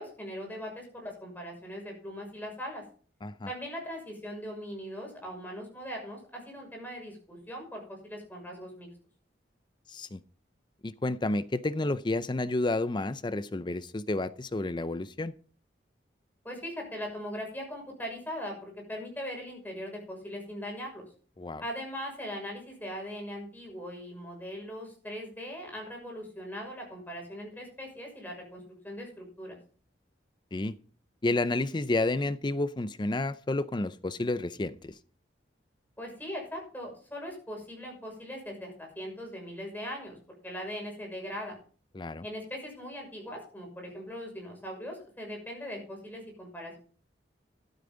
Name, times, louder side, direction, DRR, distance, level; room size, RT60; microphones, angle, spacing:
voice 1, 0.0-2.8 3.5-8.9 16.4-21.1 21.6-29.6 36.0-40.2 40.4-41.6 42.2-46.8, equal, 10° left, 6.2 m, -40 dB
voice 2, 9.9-10.2 10.8-15.3 21.4-21.6 30.5-30.7 31.2-34.9 41.9-42.2, left 2 dB, 25° left, 0.5 m, -30 dB
13.0 x 12.0 x 3.9 m
head